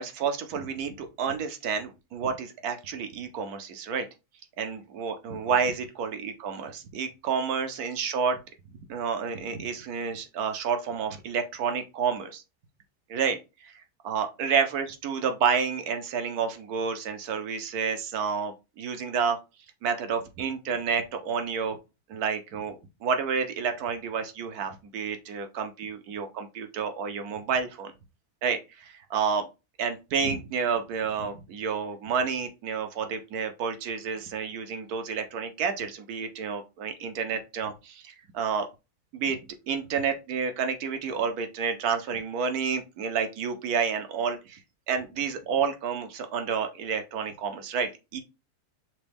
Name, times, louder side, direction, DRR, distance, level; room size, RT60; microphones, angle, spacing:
voice 1, 0.0-4.1 4.6-8.4 8.9-12.4 13.1-13.4 13.6-13.7 14.0-19.4 19.8-21.8 22.1-22.8 23.0-27.9 28.4-29.5 29.8-38.7 39.1-39.4 39.7-44.6 44.9-48.2, right 6 dB, 70° right, 7 dB, 1.2 m, -30 dB
6.1 x 2.2 x 3.4 m, 0.27 s
omnidirectional pair, 1.8 m